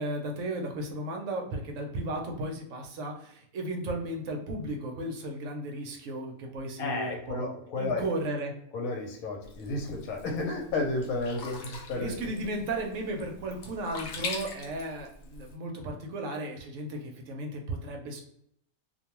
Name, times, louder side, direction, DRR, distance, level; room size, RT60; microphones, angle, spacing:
voice 1, 0.0-7.5 7.8-8.5 11.9-18.2, right 1 dB, 70° right, 2 dB, 0.9 m, -35 dB
voice 2, 6.8-8.0 8.7-12.3, left 2 dB, 80° left, 2 dB, 1.1 m, -32 dB
Sink (filling or washing), 9.4-15.5, left 3 dB, 60° left, 0.8 m, -42 dB
2.5 x 2.2 x 2.9 m, 0.69 s
omnidirectional pair, 1.5 m